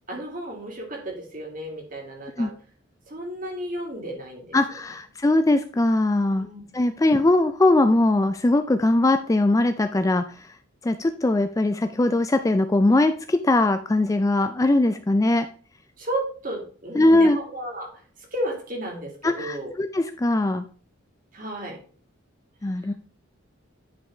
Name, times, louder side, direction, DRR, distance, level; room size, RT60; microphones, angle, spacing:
voice 1, 0.1-2.5 3.1-4.8 6.3-6.6 16.0-17.9 18.3-19.7 21.3-21.8, right 1 dB, 40° right, 0 dB, 2.3 m, -33 dB
voice 2, 4.5-6.5 6.7-10.2 10.8-15.5 17.0-17.4 19.2-20.7 22.6-22.9, left 2 dB, 15° left, 9 dB, 0.3 m, -20 dB
10.5 x 5.5 x 3.3 m, 0.41 s
head